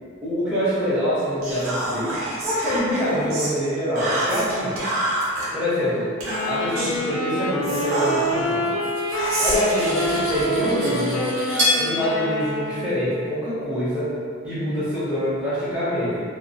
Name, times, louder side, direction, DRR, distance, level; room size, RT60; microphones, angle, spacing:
voice 1, 0.2-4.8 5.5-6.1 6.5-8.7 9.4-11.4 11.8-14.2 14.4-16.2, equal, 5° right, -13 dB, 0.6 m, -25 dB
Whispering, 1.4-3.5 4.0-5.5 6.2-7.0 7.6-8.5 9.1-11.0, right 1 dB, 75° right, 0.6 m, -28 dB
Wind instrument woodwind instrument, 6.3-13.2, left 1 dB, 75° left, 0.3 m, -27 dB
Cutlery silverware, 8.6-11.8, left 1 dB, 60° right, 1.0 m, -27 dB
2.5 x 2.0 x 2.5 m, 2.2 s
head